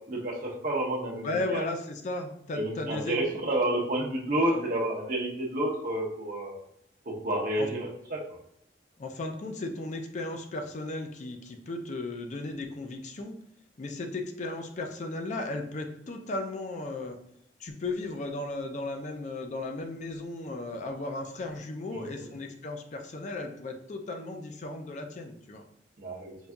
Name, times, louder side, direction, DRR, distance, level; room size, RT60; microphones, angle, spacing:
voice 1, 0.1-1.6 2.5-6.6 7.0-8.2 21.9-22.3 26.0-26.4, right 1 dB, 50° right, -1 dB, 0.8 m, -30 dB
voice 2, 1.2-3.2 4.5-4.7 7.6-7.7 9.0-13.4 13.8-17.2 17.6-25.6, left 2 dB, 45° left, 5 dB, 0.4 m, -35 dB
5.3 x 2.6 x 2.2 m, 0.73 s
head